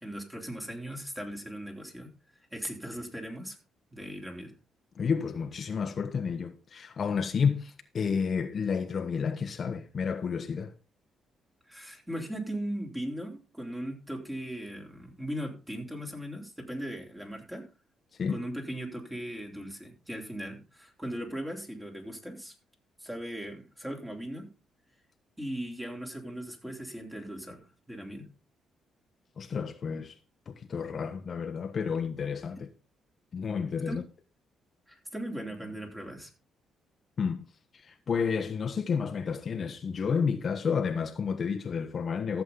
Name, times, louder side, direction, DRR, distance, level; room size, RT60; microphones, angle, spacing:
voice 1, 0.0-2.1 2.5-3.6 3.9-4.5 11.6-17.7 18.3-22.5 23.0-24.5 25.4-28.3 33.9-34.0 34.9-36.3, equal, 10° right, 3.5 m, -38 dB
voice 2, 5.0-10.7 18.2-18.4 29.4-30.1 30.5-32.7 33.3-34.0 37.2-37.4 37.7-42.4, left 6 dB, 45° left, 1.1 m, -31 dB
14.5 x 7.4 x 3.9 m
cardioid pair, 90°, 0 cm